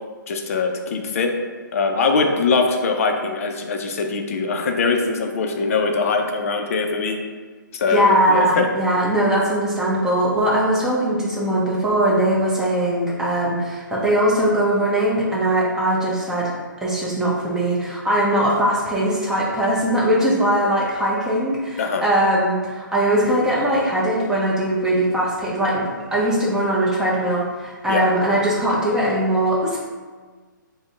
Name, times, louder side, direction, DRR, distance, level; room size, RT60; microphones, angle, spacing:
voice 1, 0.3-1.3 1.7-7.2 7.7-8.7 21.8-22.1 27.9-28.1, left 4 dB, 45° left, 3 dB, 0.4 m, -22 dB
voice 2, 7.9-16.5 16.8-29.8, right 1 dB, 5° right, -6 dB, 0.5 m, -20 dB
4.9 x 2.0 x 2.4 m, 1.4 s
figure-of-eight pair, 135°, 11 cm